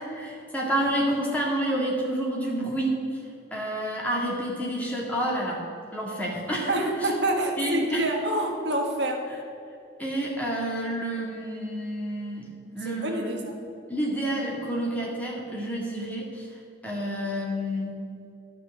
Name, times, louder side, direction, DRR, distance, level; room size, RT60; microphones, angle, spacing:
voice 1, 0.0-3.0 3.5-5.6 5.9-7.1 7.6-8.1 10.0-12.5 12.7-13.4 13.9-16.5 16.8-18.0, right 1 dB, 10° left, -4 dB, 2.1 m, -29 dB
voice 2, 6.7-9.3 12.8-13.5, right 1 dB, 55° right, 2 dB, 1.5 m, -27 dB
11.5 x 6.1 x 8.0 m, 2.5 s
head